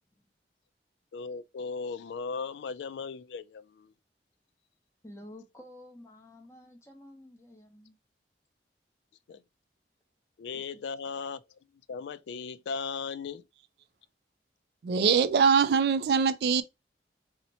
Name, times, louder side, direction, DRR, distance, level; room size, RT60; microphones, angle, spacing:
voice 1, 1.1-3.9 9.3-9.4 10.4-11.4 11.9-13.4, left 5 dB, 80° left, 0.3 m, -37 dB
voice 2, 5.0-8.0 10.5-10.8, left 1 dB, 15° left, 0.7 m, -50 dB
voice 3, 14.8-16.6, right 6 dB, 65° right, 0.3 m, -23 dB
2.8 x 2.1 x 4.0 m
head